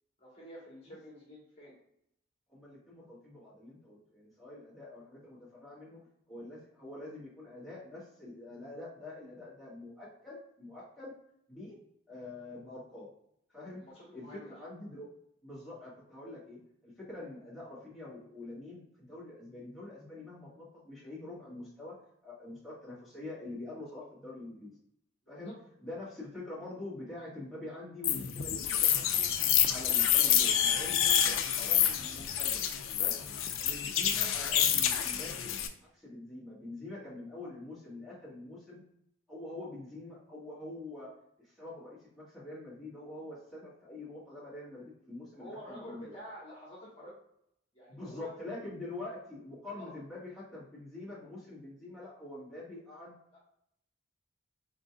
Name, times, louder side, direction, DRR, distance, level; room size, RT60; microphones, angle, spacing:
voice 1, 0.2-1.7 13.7-14.6 25.2-25.5 45.3-47.1 47.7-48.3 49.7-49.9 53.3-53.4, equal, 30° left, -5 dB, 1.3 m, -49 dB
voice 2, 2.5-6.0 6.3-11.2 11.5-11.8 12.1-13.1 13.5-13.8 14.1-15.1 15.4-22.0 22.2-24.7 25.3-25.5 25.8-29.3 29.7-33.3 33.6-38.8 39.3-46.2 47.9-53.1, left 2 dB, ahead, -9 dB, 1.6 m, -45 dB
sound 1, 28.0-35.7, left 9 dB, 80° left, 0.5 m, -28 dB
4.5 x 3.8 x 2.3 m, 0.75 s
head